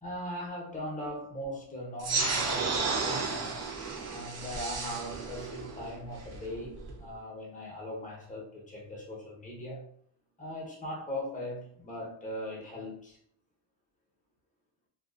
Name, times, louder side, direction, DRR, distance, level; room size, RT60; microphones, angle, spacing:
voice 1, 0.0-3.6 4.1-9.9 10.4-13.2, equal, 15° left, -3 dB, 0.9 m, -39 dB
sound 1, 2.0-7.0, right 4 dB, 35° right, 0.6 m, -33 dB
2.4 x 2.3 x 2.4 m, 0.64 s
cardioid pair, 105°, 46 cm